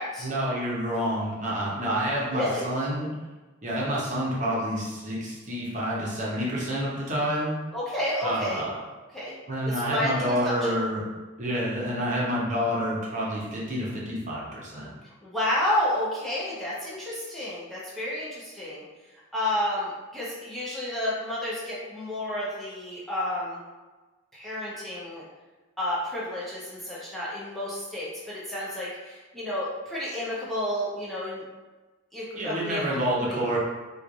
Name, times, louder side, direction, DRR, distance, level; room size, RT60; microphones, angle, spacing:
voice 1, 0.2-3.1 3.6-7.5 8.2-8.7 9.5-11.0 11.4-14.9 32.3-33.6, equal, 35° right, -5 dB, 0.8 m, -28 dB
voice 2, 2.3-2.7 7.7-8.6 9.1-9.3 9.7-10.7 15.2-18.8 19.3-23.6 24.3-25.2 25.8-31.4 32.1-33.0 33.3-33.5, left 1 dB, ahead, -9 dB, 0.6 m, -31 dB
3.1 x 2.3 x 3.8 m, 1.2 s
head